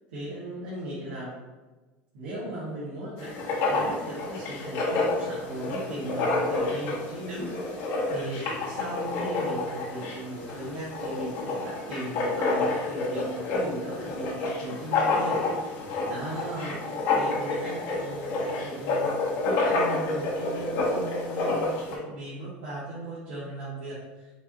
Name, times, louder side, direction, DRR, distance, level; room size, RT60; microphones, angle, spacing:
voice 1, 0.1-1.3 2.1-3.3 3.6-15.7 16.1-24.3, right 1 dB, 90° right, -10 dB, 1.5 m, -37 dB
Writing, 3.2-22.0, left 3 dB, 65° left, 1.3 m, -29 dB
5.1 x 3.1 x 2.7 m, 1.2 s
supercardioid pair, 130°, 6 cm